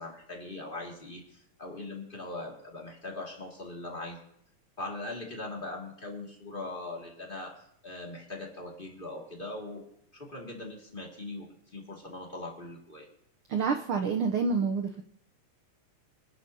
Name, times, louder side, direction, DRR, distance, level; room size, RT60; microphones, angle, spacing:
voice 1, 0.0-4.2 4.8-9.8 10.1-13.1, left 2 dB, 20° left, -1 dB, 2.1 m, -41 dB
voice 2, 13.5-15.0, right 5 dB, 85° right, 4 dB, 1.1 m, -28 dB
25.5 x 11.5 x 2.8 m, 0.70 s
omnidirectional pair, 3.4 m